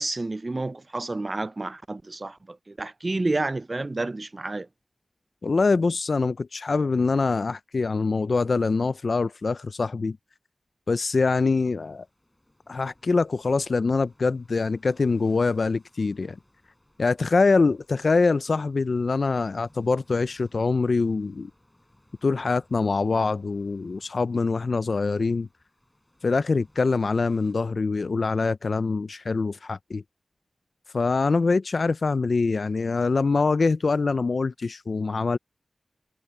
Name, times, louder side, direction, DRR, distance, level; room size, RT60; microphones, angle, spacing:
voice 1, 0.0-4.7, right 2 dB, 35° right, 0.4 m, -30 dB
voice 2, 5.4-10.2 10.9-12.1 12.7-16.4 17.0-21.5 22.2-25.5 26.2-30.0 30.9-35.4, left 4 dB, 65° left, 0.4 m, -24 dB
sound 1, 11.5-27.5, left 1 dB, 15° left, 6.3 m, -62 dB
wide cardioid pair, 90°, 0 cm